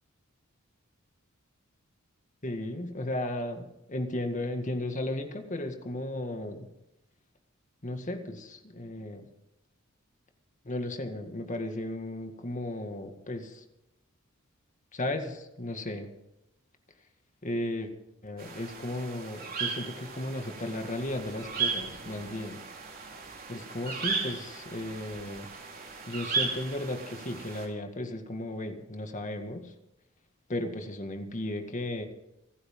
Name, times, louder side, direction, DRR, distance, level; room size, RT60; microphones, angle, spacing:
voice 1, 2.4-6.7 7.8-9.2 10.7-13.6 14.9-16.1 17.4-17.9 18.2-22.6 23.5-25.5 26.1-29.6 30.5-32.1, left 1 dB, 35° left, 5 dB, 2.0 m, -35 dB
sound 1, 18.4-27.7, right 5 dB, 45° right, 3.9 m, -36 dB
28.5 x 9.7 x 3.8 m, 0.89 s
head